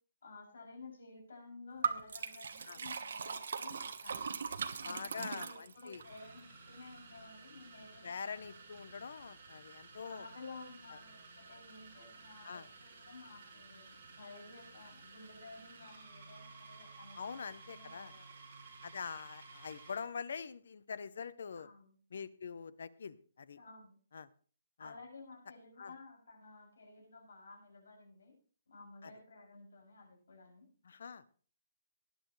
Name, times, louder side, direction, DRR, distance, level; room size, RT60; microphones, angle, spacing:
voice 1, 0.2-4.4 4.8-8.6 10.0-18.4 21.6-21.9 23.6-24.0 24.8-28.3 28.7-30.7, left 3 dB, 75° left, 0 dB, 7.0 m, -54 dB
Liquid, 1.8-6.0, right 6 dB, 60° right, 1.2 m, -39 dB
voice 2, 4.8-6.0 8.0-10.3 10.9-11.0 12.4-12.7 17.2-18.1 18.8-21.7 22.1-23.6 24.1-24.3 24.8-24.9 25.8-25.9 29.0-29.1 30.8-31.2, left 6 dB, 60° left, 17 dB, 0.7 m, -44 dB
sound 1, 5.9-20.1, right 4 dB, 35° right, 5.5 m, -55 dB
19.0 x 10.5 x 3.2 m, 0.42 s
hypercardioid pair, 175°, 0 cm